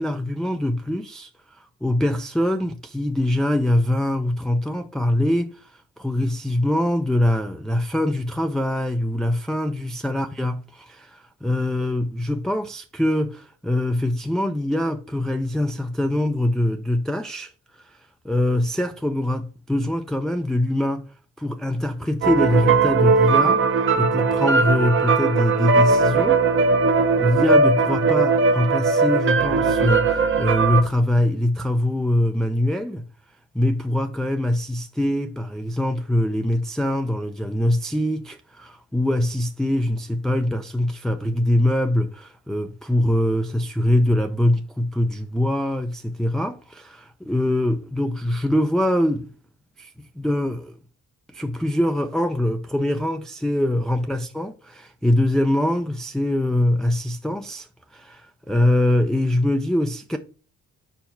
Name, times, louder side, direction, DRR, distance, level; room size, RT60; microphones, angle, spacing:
voice 1, 0.0-17.5 17.8-21.0 21.4-23.6 24.0-26.4 27.2-33.0 33.5-49.3 49.8-50.8 51.3-60.2, left 1 dB, ahead, 0.4 m, -23 dB
sound 1, 22.2-30.8, right 4 dB, 40° right, 0.9 m, -19 dB
4.6 x 4.5 x 5.5 m
cardioid pair, 90°, 30 cm